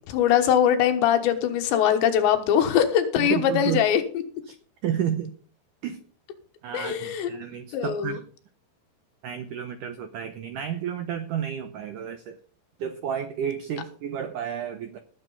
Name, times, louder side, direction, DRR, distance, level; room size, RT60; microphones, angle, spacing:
voice 1, 0.1-4.0 6.7-7.3 7.7-8.2, left 9 dB, 85° left, 7 dB, 3.6 m, -22 dB
voice 2, 3.2-3.8 4.5-4.6 4.8-5.3 5.8-6.0 6.6-8.2 9.2-12.4 12.8-15.0, right 9 dB, 80° right, 8 dB, 1.9 m, -31 dB
18.5 x 7.6 x 4.0 m, 0.43 s
omnidirectional pair, 5.0 m